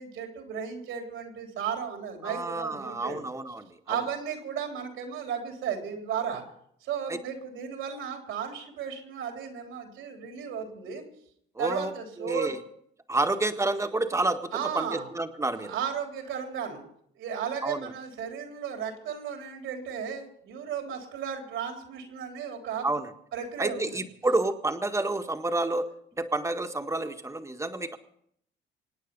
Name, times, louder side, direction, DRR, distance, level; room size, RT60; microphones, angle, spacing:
voice 1, 0.0-3.2 3.9-6.4 6.8-11.0 11.6-12.5 14.5-15.1 15.6-16.9 17.2-22.9 23.3-24.0, right 7 dB, 90° right, 3 dB, 3.7 m, -34 dB
voice 2, 2.2-4.0 7.1-7.2 11.6-11.9 12.2-12.6 13.1-15.7 17.6-17.9 22.8-23.1 23.6-25.9 26.2-28.0, right 2 dB, 15° right, 6 dB, 1.6 m, -29 dB
26.0 x 9.1 x 5.5 m, 0.69 s
cardioid pair, 90°, 20 cm